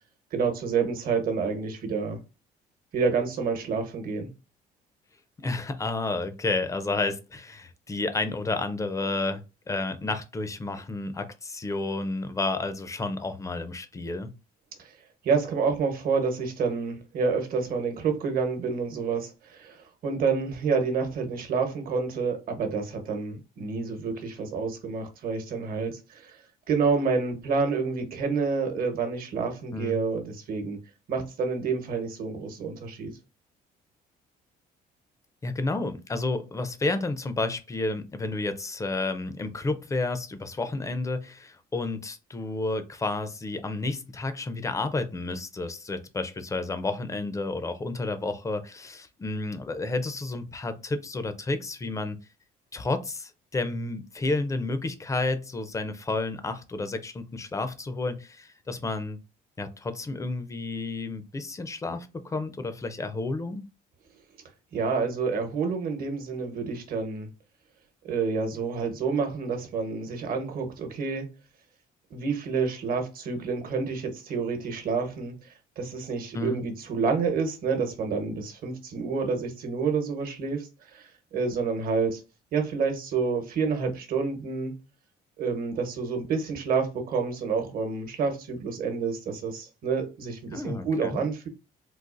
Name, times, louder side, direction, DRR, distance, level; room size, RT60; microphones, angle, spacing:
voice 1, 0.3-2.2 2.9-4.3 14.8-14.9 15.2-26.4 26.7-30.8 31.1-33.2 64.7-67.3 68.0-71.3 72.1-82.2 82.5-84.7 85.4-91.5, right 5 dB, 60° right, 1.1 m, -28 dB
voice 2, 5.4-14.3 29.7-30.1 35.4-52.2 52.7-59.2 59.6-63.6 76.3-76.6 90.5-91.2, left 3 dB, 20° left, 0.5 m, -31 dB
3.9 x 2.4 x 2.5 m
cardioid pair, 110°, 17 cm